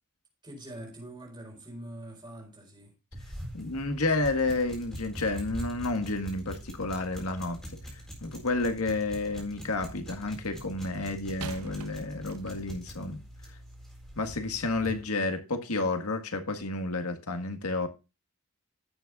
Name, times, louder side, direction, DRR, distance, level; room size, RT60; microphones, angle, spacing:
voice 1, 0.4-2.9, right 1 dB, 20° right, 4.5 m, -44 dB
sound 1, 3.1-15.0, equal, ahead, 4.1 m, -44 dB
voice 2, 3.5-7.6 7.9-13.2 13.5-13.6 14.2-17.9, left 2 dB, 85° left, 1.7 m, -31 dB
sound 2, 8.2-9.0 11.4-12.9 13.7-13.9, right 4 dB, 90° right, 0.8 m, -44 dB
16.0 x 7.3 x 2.4 m
head